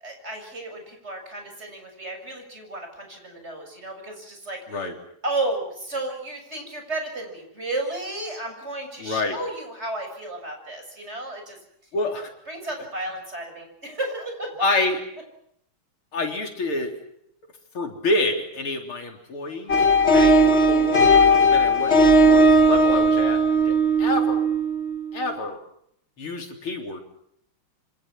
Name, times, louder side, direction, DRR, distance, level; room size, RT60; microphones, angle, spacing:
voice 1, 0.0-4.9 5.2-11.6 12.5-14.7 20.1-20.4, right 2 dB, 30° right, 4 dB, 7.2 m, -33 dB
voice 2, 9.0-9.4 11.9-12.3 14.6-15.0 16.1-16.9 17.7-19.9 20.4-24.5 25.1-25.6 26.2-27.0, left 2 dB, 80° left, 3 dB, 4.5 m, -28 dB
sound 1, 19.7-25.2, right 1 dB, 30° left, 1.7 m, -17 dB
28.0 x 25.5 x 6.2 m, 0.72 s
omnidirectional pair, 2.3 m